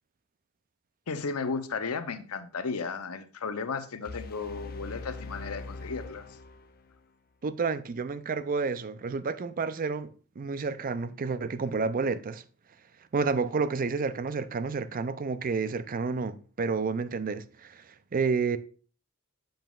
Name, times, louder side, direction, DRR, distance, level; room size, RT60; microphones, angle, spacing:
voice 1, 1.1-6.4, left 4 dB, 85° left, 0.7 m, -34 dB
sound 1, 4.0-7.1, left 3 dB, 45° left, 0.5 m, -42 dB
voice 2, 7.4-12.4 13.1-18.6, right 4 dB, 40° right, 0.4 m, -30 dB
7.7 x 7.1 x 2.4 m
head